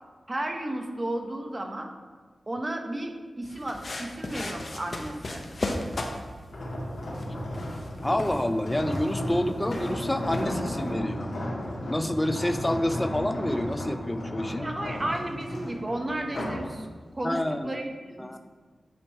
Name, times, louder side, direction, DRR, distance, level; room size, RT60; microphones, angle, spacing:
voice 1, 0.3-1.9 2.5-5.4 14.6-16.9 17.1-18.3, right 1 dB, 35° right, 4 dB, 0.7 m, -33 dB
sound 1, 3.4-10.9, left 2 dB, 55° left, 0.7 m, -37 dB
sound 2, 6.5-16.7 17.1-17.4, left 1 dB, 85° left, 1.7 m, -34 dB
voice 2, 8.0-11.3 11.9-14.7 17.2-17.8 18.2-18.4, left 1 dB, 15° left, 9 dB, 0.4 m, -28 dB
8.4 x 3.0 x 4.5 m, 1.4 s
cardioid pair, 55°, 0 cm